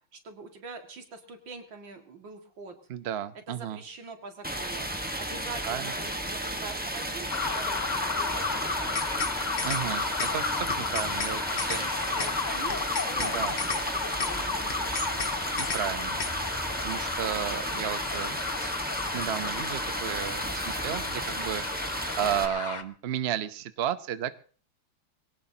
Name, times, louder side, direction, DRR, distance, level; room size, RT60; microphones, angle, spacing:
voice 1, 0.1-2.8 3.5-4.9 5.2-9.3 11.6-15.2, right 4 dB, 60° right, 4 dB, 2.7 m, -44 dB
voice 2, 2.9-3.8 5.6-5.9 9.6-11.8 13.2-13.6 15.6-16.5 16.8-18.7 19.1-24.3, right 10 dB, 90° right, 12 dB, 0.5 m, -33 dB
Stream, 4.4-22.4, right 1 dB, 5° right, 0.7 m, -34 dB
sound 1, 7.3-22.8, left 4 dB, 50° left, 0.5 m, -33 dB
sound 2, 8.7-9.3 9.6-9.8 10.2-10.3 10.7-11.3 11.6-11.8 12.2-12.3 12.7-13.3 13.6-13.8 14.2-14.3 14.7-15.3 15.6-15.8 16.2-16.3, left 5 dB, 75° left, 2.4 m, -33 dB
22.0 x 18.0 x 2.8 m, 0.40 s
omnidirectional pair, 2.3 m